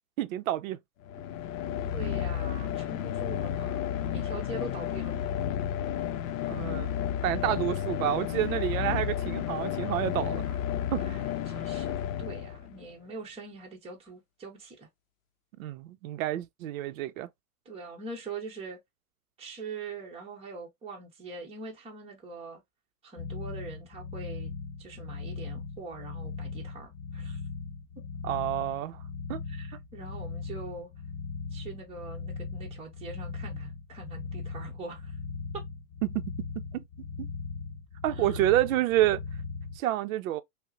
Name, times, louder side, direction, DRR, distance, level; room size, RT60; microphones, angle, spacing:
voice 1, 0.2-0.8 6.5-6.9 7.2-10.6 10.9-11.1 11.5-11.6 15.6-17.3 28.2-29.0 29.3-29.4 36.0-36.3 36.7-36.8 37.2-37.3 38.0-39.2 39.8-40.4, right 14 dB, 65° right, 0.6 m, -29 dB
sound 1, 1.0-12.9, left 10 dB, 60° left, 0.6 m, -32 dB
voice 2, 1.8-5.3 11.0-14.9 17.6-18.8 19.4-22.6 23.0-24.5 24.8-27.4 29.5-30.9 31.5-35.2 35.5-35.6 38.1-38.4, right 3 dB, 15° right, 0.9 m, -43 dB
sound 2, 23.2-39.8, left 5 dB, 30° left, 1.3 m, -39 dB
5.4 x 2.1 x 2.4 m
hypercardioid pair, 135°, 45 cm